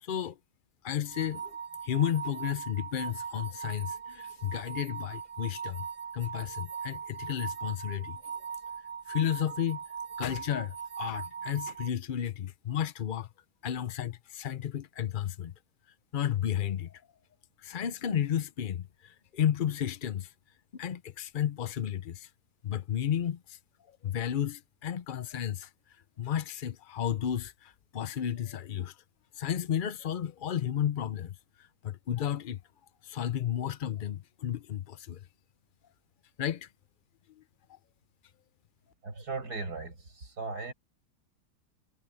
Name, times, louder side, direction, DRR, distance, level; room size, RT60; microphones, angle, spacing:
voice 1, 0.0-0.4 0.8-1.6 1.8-5.9 6.1-8.2 9.1-9.8 10.2-13.3 13.6-15.5 16.1-17.0 17.6-20.3 20.7-22.3 22.6-23.6 23.9-25.7 26.2-29.0 29.3-32.6 33.0-35.2 36.4-36.7 37.4-37.5 37.7-37.8, left 10 dB, 65° left, 0.5 m, -33 dB
sound 1, 1.1-11.9, right 6 dB, 50° right, 0.4 m, -40 dB
voice 2, 39.0-40.7, right 3 dB, 75° right, 5.8 m, -37 dB
omnidirectional pair, 1.7 m